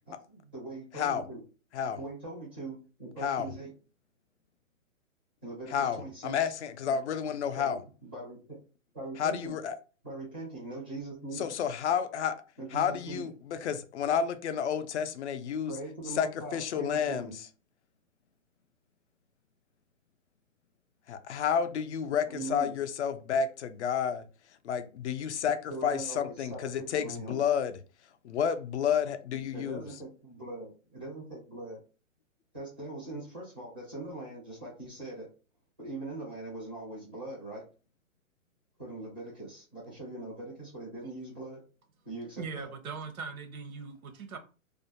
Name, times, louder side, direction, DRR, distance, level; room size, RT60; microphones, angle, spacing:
voice 1, 0.1-1.4 2.0-3.7 5.4-6.5 7.5-8.4 8.9-9.6 10.0-11.5 12.6-13.3 15.7-17.4 22.3-22.7 25.7-27.4 29.5-31.8 32.5-35.3 35.8-37.6 38.8-41.6 42.0-42.7, right 2 dB, 10° right, 0.4 m, -41 dB
voice 2, 5.7-7.8 9.2-9.8 11.4-12.4 12.7-15.8 16.2-17.3 21.1-24.2 24.6-27.8 28.2-29.9, left 7 dB, 60° left, 0.5 m, -30 dB
voice 3, 42.4-44.4, right 5 dB, 90° right, 0.7 m, -40 dB
2.5 x 2.1 x 2.7 m
hypercardioid pair, 160°, 41 cm